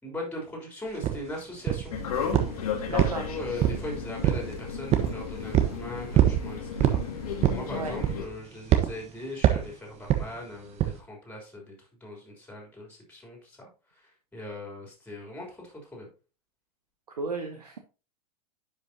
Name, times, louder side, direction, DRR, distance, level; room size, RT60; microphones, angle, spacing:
voice 1, 0.0-1.9 2.6-7.0 7.5-11.7 12.0-13.6 13.9-16.1, left 1 dB, 5° left, -1 dB, 3.4 m, -40 dB
sound 1, 1.0-1.2 1.7-2.0 2.3-2.6 3.0-3.9 4.2-4.5 4.9-5.1 5.5-5.8 6.1-6.4 6.8-7.0 7.4-7.7 8.0-8.3 8.7-8.9 9.4-9.7 10.1-10.3 10.8-11.0, right 12 dB, 30° right, 1.2 m, -22 dB
sound 2, 1.9-8.3, left 6 dB, 65° left, 1.7 m, -34 dB
voice 2, 2.9-3.3 7.7-8.0 17.1-17.8, right 4 dB, 75° right, 5 dB, 1.0 m, -34 dB
10.0 x 5.6 x 2.8 m, 0.33 s
figure-of-eight pair, 90°, 21 cm